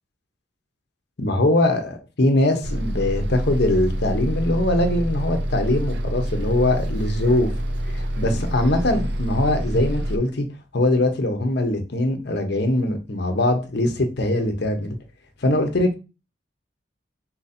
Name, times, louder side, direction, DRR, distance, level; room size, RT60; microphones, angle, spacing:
voice 1, 1.2-7.5 7.9-10.5 10.7-15.0 15.4-15.9, left 1 dB, 60° left, 0.8 m, -22 dB
Bus, 2.6-10.2, equal, 60° right, 0.5 m, -26 dB
4.4 x 2.6 x 4.2 m
head